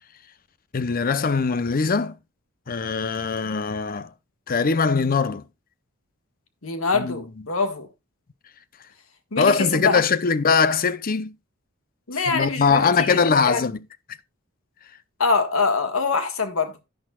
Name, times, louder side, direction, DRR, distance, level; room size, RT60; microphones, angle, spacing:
voice 1, 0.7-2.1 2.7-4.1 4.5-5.4 6.9-7.1 9.4-11.3 12.3-13.8, left 5 dB, 45° left, 0.6 m, -21 dB
voice 2, 6.6-7.9 9.3-10.0 12.1-13.2 13.4-13.7 15.2-16.7, left 4 dB, 80° left, 1.6 m, -24 dB
11.0 x 10.5 x 2.3 m
head